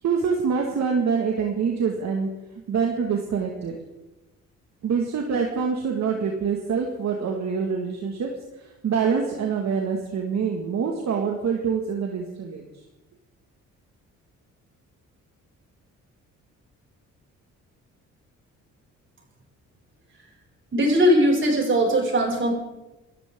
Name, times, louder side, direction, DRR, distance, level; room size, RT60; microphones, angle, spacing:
voice 1, 0.0-2.3 2.7-3.7 4.8-8.3 8.6-12.6, right 6 dB, 60° right, 1 dB, 2.2 m, -25 dB
voice 2, 20.7-22.5, equal, 40° right, 0 dB, 6.9 m, -20 dB
27.5 x 13.0 x 3.8 m, 1.0 s
cardioid pair, 90°, 30 cm